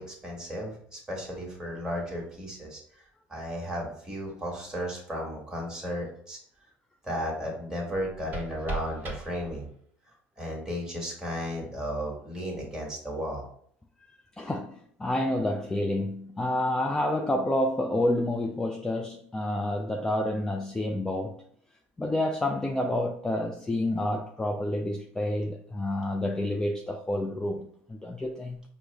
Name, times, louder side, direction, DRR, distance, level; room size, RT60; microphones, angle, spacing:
voice 1, 0.0-2.8 3.3-6.4 7.0-9.7 10.4-13.4, equal, 10° right, 1.4 m, -34 dB
sound 1, 7.9-9.9, right 3 dB, 35° right, 1.2 m, -39 dB
voice 2, 14.1-21.4 22.0-28.6, left 1 dB, 10° left, 0.3 m, -29 dB
4.5 x 2.0 x 3.3 m
hypercardioid pair, 85°, 6 cm